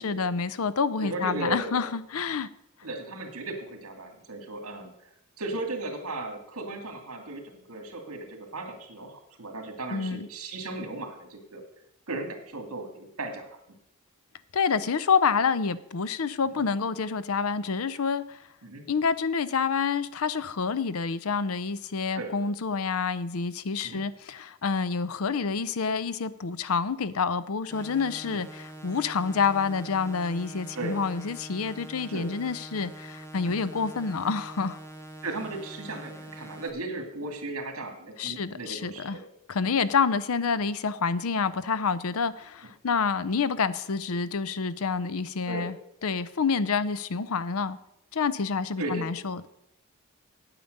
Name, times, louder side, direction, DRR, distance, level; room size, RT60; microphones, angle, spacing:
voice 1, 0.0-2.5 9.9-10.3 14.5-18.4 18.9-34.8 38.2-39.2 39.5-45.7 46.0-47.8 48.1-49.5, left 5 dB, 75° left, 0.6 m, -28 dB
voice 2, 1.0-1.9 2.8-4.9 5.4-11.6 12.1-13.5 16.4-16.6 18.6-18.9 22.1-22.3 23.8-24.0 28.3-28.4 30.7-31.0 32.1-32.3 33.4-33.6 35.2-39.2 45.5-45.7 48.8-49.0, right 2 dB, 80° right, 2.2 m, -36 dB
sound 1, 27.7-36.7, right 1 dB, 10° left, 0.9 m, -44 dB
8.8 x 8.5 x 6.5 m
head